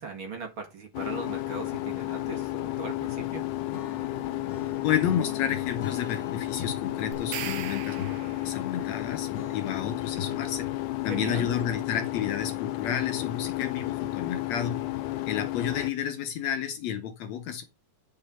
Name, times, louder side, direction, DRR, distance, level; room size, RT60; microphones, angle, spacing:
voice 1, 0.0-3.4 11.1-11.5, right 4 dB, 45° right, 2.4 m, -39 dB
sound 1, 0.9-15.9, left 16 dB, 85° left, 2.2 m, -32 dB
Acoustic guitar / Strum, 3.7-10.9, left 6 dB, 40° left, 2.4 m, -41 dB
voice 2, 4.8-8.0 8.5-10.7 11.0-14.8 15.3-17.6, left 9 dB, 70° left, 2.0 m, -31 dB
sound 2, 7.1-8.7, right 11 dB, 70° right, 2.2 m, -38 dB
10.0 x 5.5 x 4.3 m
omnidirectional pair, 3.6 m